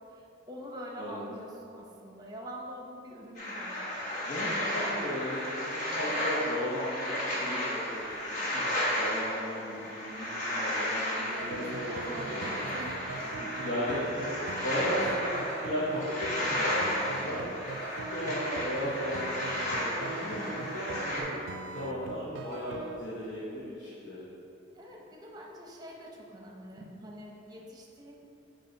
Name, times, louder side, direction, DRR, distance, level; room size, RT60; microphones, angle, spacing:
voice 1, 0.1-3.8 11.0-11.6 11.9-13.5 24.8-28.1, equal, 20° right, -1 dB, 0.8 m, -45 dB
sound 1, 3.4-21.2, left 1 dB, 40° left, 1.3 m, -33 dB
voice 2, 4.2-12.5 13.2-17.6 17.9-24.3, equal, 65° left, -10 dB, 1.2 m, -36 dB
sound 2, 11.4-23.0, right 4 dB, 85° right, 0.4 m, -41 dB
8.4 x 3.1 x 5.3 m, 2.7 s
head